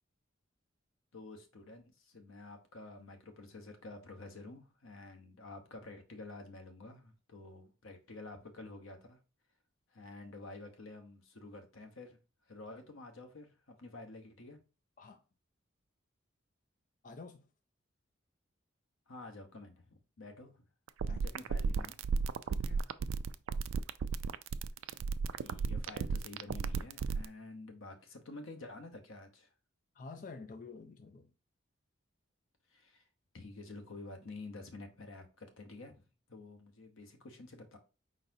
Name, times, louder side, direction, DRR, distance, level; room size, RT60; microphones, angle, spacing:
voice 1, 1.1-9.2 9.9-12.2 12.4-14.6 19.1-20.6 21.0-22.0 22.7-22.8 23.1-23.2 25.4-29.5 32.7-33.0 33.3-37.8, left 2 dB, 85° left, 1.0 m, -50 dB
voice 2, 17.0-17.5 21.1-21.3 22.6-22.9 30.0-31.3, left 4 dB, 40° left, 0.3 m, -49 dB
sound 1, 20.9-27.3, right 5 dB, 80° right, 0.3 m, -34 dB
4.9 x 4.0 x 2.7 m
head